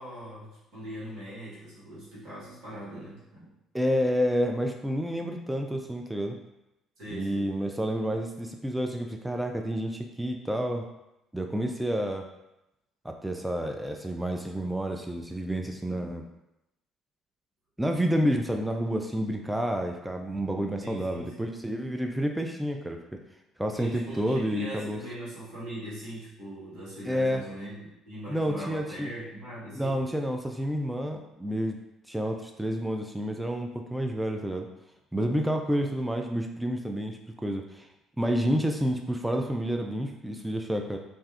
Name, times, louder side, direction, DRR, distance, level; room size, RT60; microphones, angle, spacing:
voice 1, 0.0-3.5 7.0-7.5 20.8-21.5 23.8-30.0, right 1 dB, 65° right, -8 dB, 1.4 m, -41 dB
voice 2, 3.7-6.4 7.1-10.8 11.3-12.3 13.0-16.3 17.8-23.2 23.6-25.0 27.0-27.4 28.3-29.1 29.8-31.8 32.1-34.7 35.1-37.9 38.2-41.0, equal, 5° right, 3 dB, 0.3 m, -29 dB
2.6 x 2.2 x 3.3 m, 0.90 s
hypercardioid pair, 55°, 0 cm